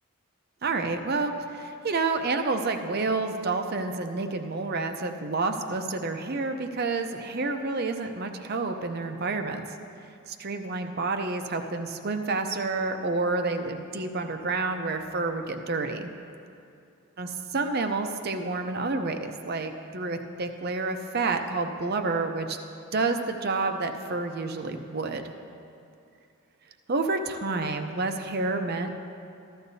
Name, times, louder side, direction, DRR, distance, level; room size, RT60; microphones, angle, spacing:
voice 1, 0.6-9.6 10.3-16.1 17.2-22.6 22.9-25.3 26.9-29.0, right 3 dB, 45° right, 6 dB, 0.6 m, -29 dB
15.0 x 12.5 x 2.7 m, 2.6 s
head